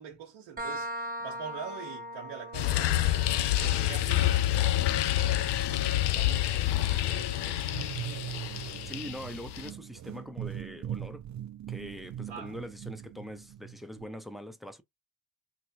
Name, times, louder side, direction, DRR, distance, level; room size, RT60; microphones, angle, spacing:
voice 1, 0.0-7.6 12.3-12.5, right 7 dB, 85° right, 0.8 m, -45 dB
sound 1, 0.6-8.0, equal, 20° right, 1.0 m, -42 dB
sound 2, 2.5-9.7, left 14 dB, 65° left, 0.5 m, -28 dB
metal ball balloon, 7.3-14.1, right 11 dB, 40° right, 0.5 m, -40 dB
voice 2, 8.8-11.2 11.7-14.8, equal, ahead, 0.7 m, -43 dB
3.1 x 2.9 x 2.7 m
supercardioid pair, 45°, 45 cm